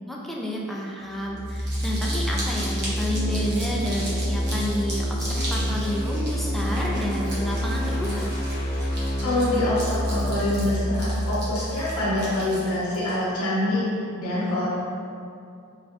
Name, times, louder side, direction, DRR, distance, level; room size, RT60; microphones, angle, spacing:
voice 1, 0.0-8.3, equal, ahead, -4 dB, 0.3 m, -30 dB
sound 1, 1.1-12.9, equal, 40° left, 0.7 m, -28 dB
Crumpling crinkling, 1.4-13.1, right 1 dB, 50° right, 0.9 m, -37 dB
voice 2, 9.2-13.9 14.2-14.7, left 1 dB, 75° left, -9 dB, 0.9 m, -25 dB
3.8 x 3.3 x 2.4 m, 2.5 s
head